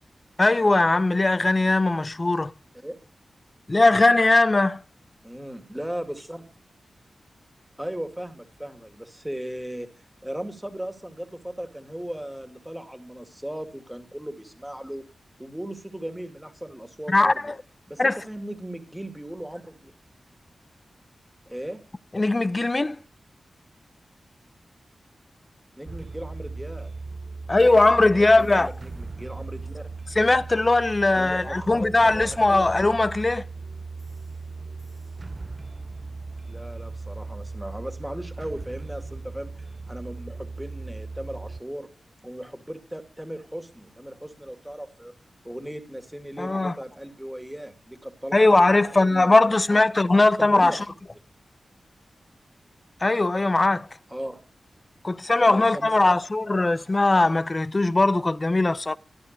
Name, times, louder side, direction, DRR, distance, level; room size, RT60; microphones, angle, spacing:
voice 1, 0.4-2.5 3.7-4.8 17.1-17.5 18.0-18.2 22.1-23.0 27.5-28.7 30.2-33.4 46.4-46.7 48.3-50.8 53.0-53.9 55.0-59.0, left 2 dB, 25° left, 0.7 m, -20 dB
voice 2, 5.2-6.5 7.8-9.9 10.2-15.0 15.4-17.5 17.9-19.9 21.5-21.8 25.7-26.9 28.0-29.9 31.1-32.7 36.5-41.9 42.2-45.1 45.4-49.8 50.4-50.8 54.1-54.4 55.5-56.2, right 1 dB, 5° right, 2.3 m, -37 dB
sound 1, 25.9-41.6, right 3 dB, 30° right, 0.7 m, -38 dB
14.5 x 12.0 x 6.6 m
wide cardioid pair, 160°, 0 cm